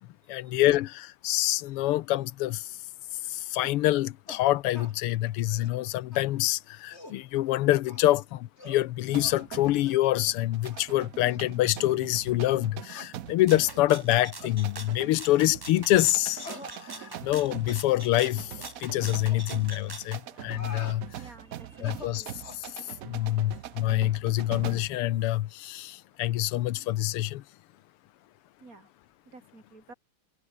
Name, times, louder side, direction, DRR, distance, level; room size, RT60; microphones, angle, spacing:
voice 1, 0.3-2.7 3.3-16.5 16.9-18.5 18.8-21.1 21.8-22.2 22.5-22.7 23.0-27.4, left 15 dB, 90° left, 1.7 m, -26 dB
sound 1, 3.6-3.8 4.3-4.4 4.7-5.0 5.4-5.8 6.1-6.2 6.7-7.2 7.9-8.2 8.6-8.9 9.2-9.4 9.8-10.0 10.6-10.8 11.3-11.4 12.0-12.1 12.9-13.1 13.6-13.9 14.4-14.6 15.4-15.6 16.4-17.4 17.7-17.8 18.4-18.7 19.3-19.5 20.3-21.0 21.7-22.7, left 1 dB, 30° left, 8.0 m, -46 dB
sound 2, 9.1-25.0, right 12 dB, 80° right, 0.7 m, -43 dB
Rattle (instrument), 13.5-20.2, right 2 dB, 15° right, 1.0 m, -44 dB
voice 2, 21.2-22.4 28.6-28.9 29.3-29.9, right 3 dB, 40° right, 3.8 m, -51 dB
omnidirectional pair, 2.4 m